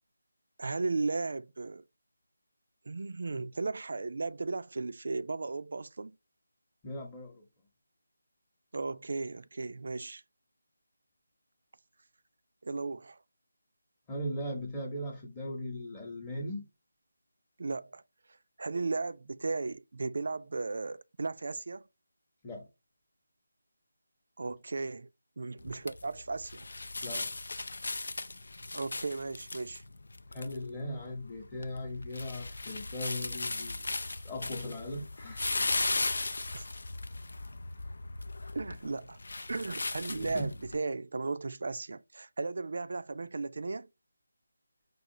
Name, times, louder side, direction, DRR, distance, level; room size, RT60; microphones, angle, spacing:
voice 1, 0.6-1.8 2.9-6.2 8.7-10.2 12.6-13.2 17.6-18.0 18.6-21.8 24.4-25.1 25.4-26.7 28.7-29.8 36.5-36.6 38.5-39.2 39.5-43.9, right 3 dB, 60° right, 0.3 m, -35 dB
voice 2, 6.8-7.4 14.1-16.6 22.4-22.7 27.0-27.3 30.3-33.9 34.2-35.5 40.1-40.5, left 1 dB, 15° left, 0.8 m, -38 dB
sound 1, 25.6-40.8, left 2 dB, 65° left, 0.4 m, -37 dB
4.7 x 2.4 x 2.7 m
figure-of-eight pair, 165°, 0 cm